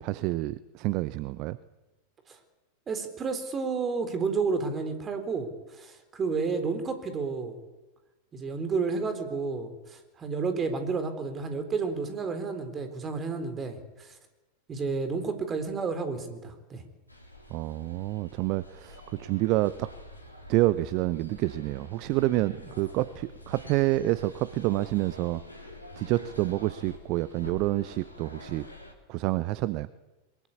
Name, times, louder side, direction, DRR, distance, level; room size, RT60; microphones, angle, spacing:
voice 1, 0.0-1.6 17.5-19.9 20.5-25.4 26.0-28.7 29.1-29.9, right 18 dB, 40° right, 18 dB, 0.7 m, -28 dB
voice 2, 2.9-7.6 8.3-14.1 14.7-16.8 22.6-22.7, right 4 dB, 20° right, 9 dB, 3.9 m, -31 dB
sound 1, 17.1-28.9, left 1 dB, 85° left, 3.7 m, -47 dB
23.0 x 21.5 x 8.5 m, 1.1 s
figure-of-eight pair, 90°, 0 cm